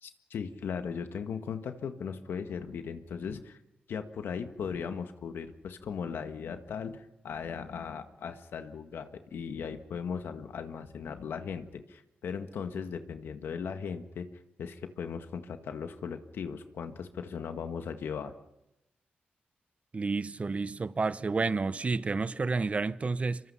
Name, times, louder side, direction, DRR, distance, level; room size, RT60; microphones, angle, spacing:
voice 1, 0.0-3.6 3.9-14.3 14.6-18.3, left 6 dB, 80° left, 1.7 m, -38 dB
voice 2, 19.9-23.4, right 4 dB, 35° right, 0.8 m, -30 dB
25.5 x 24.0 x 5.7 m
cardioid pair, 90°, 4 cm